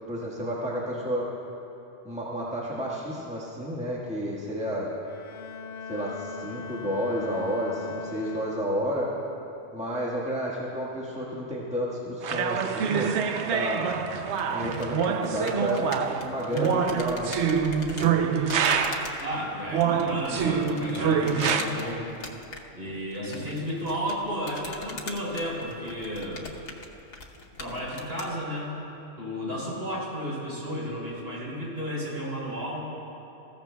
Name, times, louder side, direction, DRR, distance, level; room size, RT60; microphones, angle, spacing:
voice 1, 0.1-1.3 2.0-4.9 5.9-9.1 9.7-13.1 13.5-13.9 14.5-17.4 22.8-23.0 23.3-23.4, equal, 5° right, -6 dB, 1.4 m, -31 dB
Bowed string instrument, 5.0-9.1, left 5 dB, 60° left, 0.7 m, -40 dB
sound 1, 12.2-19.2 19.7-21.6, right 6 dB, 65° right, 0.9 m, -26 dB
sound 2, 14.3-28.3, left 3 dB, 80° left, 1.4 m, -43 dB
voice 2, 19.2-22.0 22.7-26.5 27.6-28.8 29.2-32.8, equal, 50° right, -5 dB, 3.7 m, -33 dB
20.5 x 15.0 x 2.3 m, 2.9 s
omnidirectional pair, 1.3 m